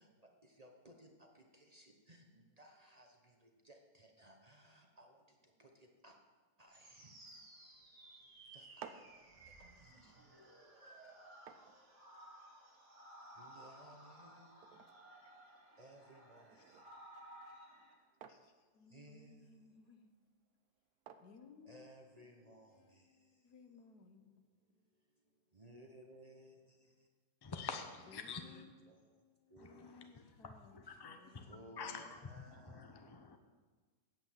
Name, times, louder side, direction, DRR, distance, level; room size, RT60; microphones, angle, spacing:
voice 1, 0.0-6.2 6.6-7.2 8.5-9.0 9.4-10.1 13.4-14.6 15.8-16.6 18.9-19.5 21.6-23.1 25.5-26.8 28.3-29.0 29.5-29.9 31.3-33.0, right 1 dB, 30° right, 2 dB, 0.9 m, -60 dB
sound 1, 6.7-17.9, right 1 dB, 50° right, 2.1 m, -58 dB
sound 2, 8.5-22.4, right 8 dB, 75° right, 1.1 m, -61 dB
voice 2, 13.5-14.1 16.6-16.8 18.3-20.1 21.2-24.5 28.1-28.7 29.0-31.8, left 5 dB, 80° left, 7 dB, 1.5 m, -62 dB
voice 3, 27.4-28.6 29.6-31.5 31.8-33.4, left 5 dB, 30° left, 6 dB, 0.5 m, -48 dB
9.4 x 8.1 x 7.4 m, 1.4 s
omnidirectional pair, 1.7 m